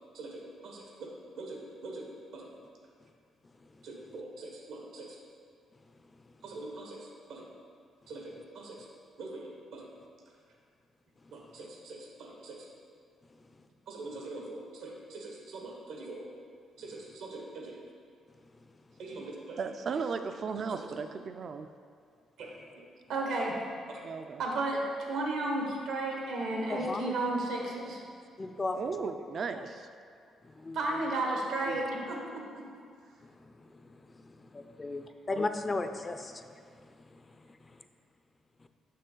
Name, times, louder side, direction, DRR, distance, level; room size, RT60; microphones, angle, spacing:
voice 1, 0.1-1.1 1.4-2.5 3.8-5.2 6.4-7.5 8.1-8.9 9.2-9.9 11.3-12.7 13.9-16.2 16.8-17.8 19.0-19.6 20.7-20.8 22.4-22.6 23.1-23.6 23.9-24.0 24.4-28.0 30.7-32.6, right 2 dB, 85° right, -1 dB, 1.2 m, -36 dB
voice 2, 19.6-21.7 24.0-24.4 28.7-29.9, right 5 dB, 55° right, 8 dB, 0.3 m, -35 dB
voice 3, 26.7-27.1 28.4-28.8 29.6-29.7 30.6-31.1 34.5-36.4, left 3 dB, 25° left, 8 dB, 0.4 m, -34 dB
6.6 x 5.6 x 3.8 m, 2.2 s
cardioid pair, 90°, 0 cm